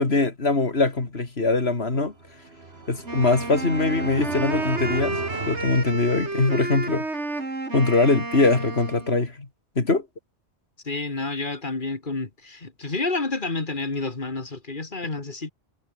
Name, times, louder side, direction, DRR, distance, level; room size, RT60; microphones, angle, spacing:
voice 1, 0.0-2.1 2.9-5.2 5.5-7.1 7.7-9.5 9.7-10.1, left 3 dB, 65° left, 3.4 m, -22 dB
sound 1, 2.0-6.6, right 3 dB, 65° right, 2.7 m, -37 dB
Wind instrument woodwind instrument, 3.0-9.2, right 2 dB, 85° right, 4.2 m, -31 dB
voice 2, 10.8-15.5, left 3 dB, 50° left, 2.5 m, -29 dB
omnidirectional pair, 1.1 m